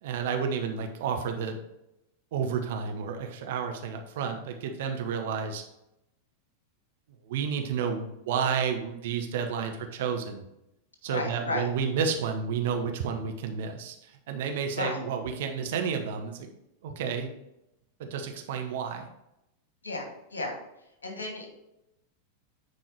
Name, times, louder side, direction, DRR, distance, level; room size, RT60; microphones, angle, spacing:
voice 1, 0.0-1.6 2.3-5.6 7.2-10.5 11.0-16.5 16.8-17.3 18.0-19.1, right 6 dB, 55° right, 5 dB, 0.9 m, -31 dB
voice 2, 11.1-11.7 14.7-15.0 19.8-20.6 21.0-21.5, left 2 dB, 70° left, 2 dB, 2.0 m, -33 dB
9.5 x 4.5 x 4.5 m, 0.86 s
figure-of-eight pair, 90°, 0 cm